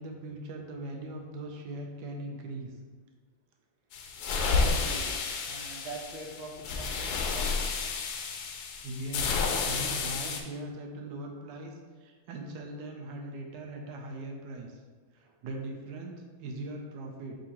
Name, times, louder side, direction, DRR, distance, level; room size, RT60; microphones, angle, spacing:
voice 1, 0.0-2.7 8.8-11.7 12.0-14.7 15.1-17.4, right 1 dB, 70° right, 2 dB, 1.1 m, -40 dB
sound 1, 3.9-10.4, left 4 dB, 75° left, 0.9 m, -31 dB
voice 2, 4.6-5.1 5.4-7.6, right 2 dB, 90° right, 0 dB, 1.5 m, -43 dB
6.2 x 2.7 x 2.9 m, 1.5 s
omnidirectional pair, 2.1 m